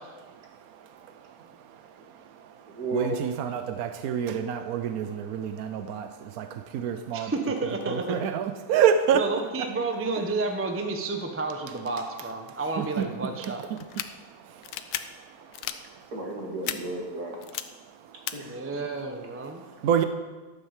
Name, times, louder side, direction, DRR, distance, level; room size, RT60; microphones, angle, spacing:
voice 1, 0.3-7.3 7.9-9.3 12.8-13.1 13.4-13.5 14.1-16.1 17.9-18.3 19.7-20.0, right 8 dB, 80° right, 9 dB, 0.8 m, -29 dB
voice 2, 2.7-3.2 16.1-17.4 18.3-18.8, right 1 dB, 45° right, 0 dB, 2.6 m, -34 dB
voice 3, 7.1-8.3 9.1-13.6 18.4-19.6, right 3 dB, 15° right, 4 dB, 0.5 m, -31 dB
sound 1, 13.8-14.1 14.6-15.0 15.5-15.8 16.6-16.8 17.4-17.6 18.3-18.4, left 13 dB, 75° left, 1.5 m, -32 dB
12.5 x 7.7 x 7.4 m, 1.3 s
omnidirectional pair, 2.4 m